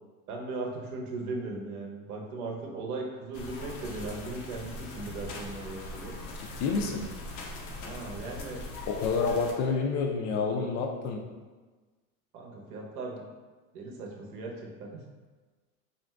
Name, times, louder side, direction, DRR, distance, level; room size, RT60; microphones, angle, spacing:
voice 1, 0.3-6.1 7.8-8.6 12.3-13.2 13.7-15.0, right 3 dB, 85° right, -1 dB, 0.8 m, -38 dB
sound 1, 3.3-9.5, left 2 dB, 80° left, 0.7 m, -41 dB
voice 2, 6.4-7.1 8.9-11.2, left 4 dB, 40° left, 1 dB, 0.4 m, -29 dB
2.5 x 2.2 x 3.3 m, 1.3 s
supercardioid pair, 110°, 43 cm